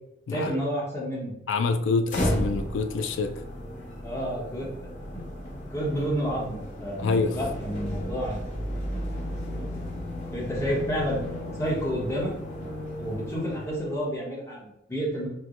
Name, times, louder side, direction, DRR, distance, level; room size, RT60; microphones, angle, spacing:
voice 1, 0.3-1.3 4.0-4.7 5.7-8.4 8.8-8.9 10.3-11.2 11.6-12.3 13.0-15.3, equal, 15° left, -5 dB, 0.9 m, -30 dB
voice 2, 1.5-3.3 7.0-7.4, left 4 dB, 85° left, 8 dB, 0.3 m, -26 dB
sound 1, 2.1-14.1, equal, 40° left, 0.6 m, -34 dB
4.4 x 2.1 x 2.4 m, 0.84 s
head